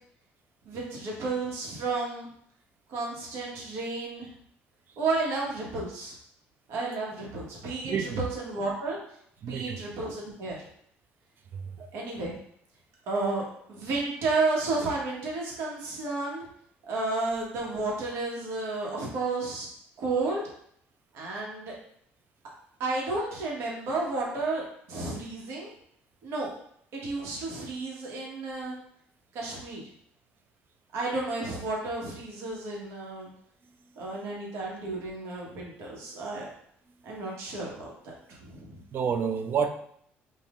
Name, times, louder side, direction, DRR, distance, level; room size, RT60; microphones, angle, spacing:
voice 1, 0.6-2.3 2.9-4.3 5.0-6.1 6.7-9.0 9.4-10.6 11.8-12.4 13.1-16.5 16.9-19.7 20.0-20.4 21.1-21.7 22.8-25.7 26.2-26.5 26.9-28.7 29.3-29.8 30.9-33.3 34.0-36.5 37.0-38.1 38.4-38.8, right 3 dB, 75° right, -3 dB, 1.2 m, -32 dB
voice 2, 7.8-8.2 9.4-10.2 11.5-11.8 33.9-34.0 37.0-37.2 38.9-39.7, right 6 dB, 50° right, 7 dB, 0.5 m, -30 dB
5.5 x 2.5 x 2.5 m, 0.67 s
cardioid pair, 95°, 5 cm